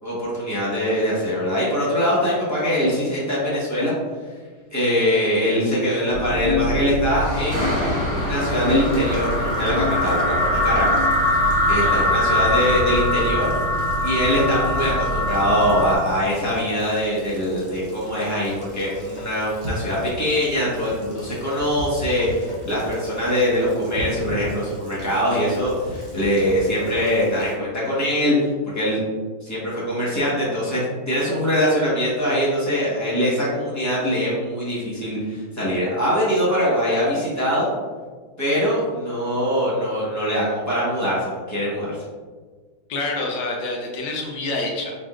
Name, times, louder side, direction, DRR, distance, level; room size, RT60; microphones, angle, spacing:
voice 1, 0.0-3.9 4.7-11.1 11.6-13.5 14.0-29.0 29.4-37.7 38.4-42.0, equal, 10° left, -8 dB, 0.9 m, -23 dB
sound 1, 6.1-16.0, left 1 dB, 85° left, 2.3 m, -22 dB
Rain, 8.4-27.5, equal, 30° left, 0.4 m, -38 dB
voice 2, 42.9-45.0, left 2 dB, 70° left, 0 dB, 1.3 m, -27 dB
4.5 x 4.1 x 2.4 m, 1.5 s
omnidirectional pair, 2.3 m